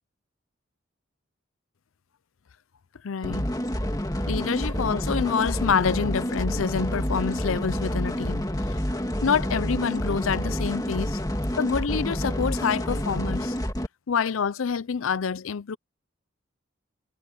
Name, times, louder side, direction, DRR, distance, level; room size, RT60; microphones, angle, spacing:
voice 1, 3.0-3.5 4.1-8.8 9.2-11.2 11.5-13.6 14.1-15.8, left 6 dB, 85° left, 0.5 m, -27 dB
sound 1, 3.2-13.9, equal, 20° left, 2.3 m, -28 dB
head